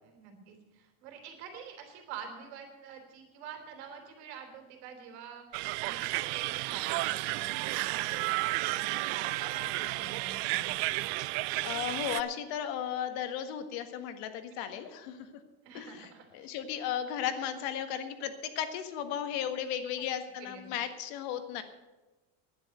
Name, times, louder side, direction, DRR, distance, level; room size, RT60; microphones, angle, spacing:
voice 1, 0.0-8.4 8.6-11.0 14.5-14.7 15.6-16.5 20.4-20.7, right 6 dB, 80° right, 5 dB, 3.3 m, -47 dB
sound 1, 5.5-12.2, right 21 dB, 65° right, 0.5 m, -32 dB
voice 2, 11.6-15.2 15.7-21.6, left 9 dB, 70° left, 8 dB, 1.6 m, -35 dB
10.5 x 9.7 x 7.9 m, 1.1 s
cardioid pair, 150°, 33 cm